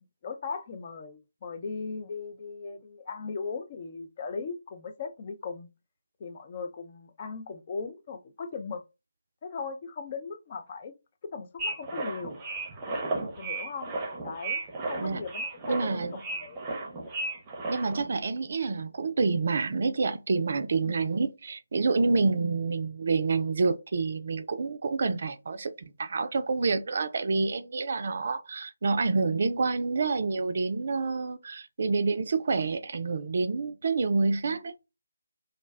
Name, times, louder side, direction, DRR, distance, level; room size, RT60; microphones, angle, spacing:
voice 1, 0.2-5.7 6.2-8.8 9.4-10.9 11.3-12.4 13.4-13.9 14.2-16.7 20.8-21.1 22.0-22.2, left 5 dB, 35° left, 0.4 m, -38 dB
sound 1, 11.6-18.1, right 2 dB, 15° right, 0.7 m, -34 dB
voice 2, 15.7-16.2 17.7-34.9, right 4 dB, 50° right, 0.4 m, -28 dB
2.3 x 2.2 x 3.3 m
figure-of-eight pair, 150°, 0 cm